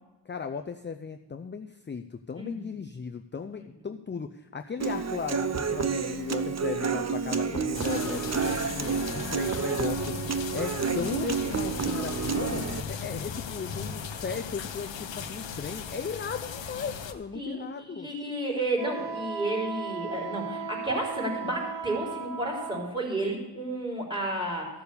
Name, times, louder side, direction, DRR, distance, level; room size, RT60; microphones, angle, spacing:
voice 1, 0.3-18.1, left 6 dB, 25° left, 6 dB, 0.5 m, -36 dB
Human voice / Acoustic guitar, 4.8-12.8, right 5 dB, 35° right, 0.7 m, -29 dB
sound 1, 7.7-17.1, left 6 dB, 80° left, 0.9 m, -37 dB
voice 2, 17.3-24.7, right 1 dB, 10° right, -2 dB, 4.0 m, -32 dB
Wind instrument woodwind instrument, 18.8-22.9, right 5 dB, 65° right, 0.9 m, -36 dB
13.5 x 7.0 x 6.8 m, 1.1 s
wide cardioid pair, 80°, 44 cm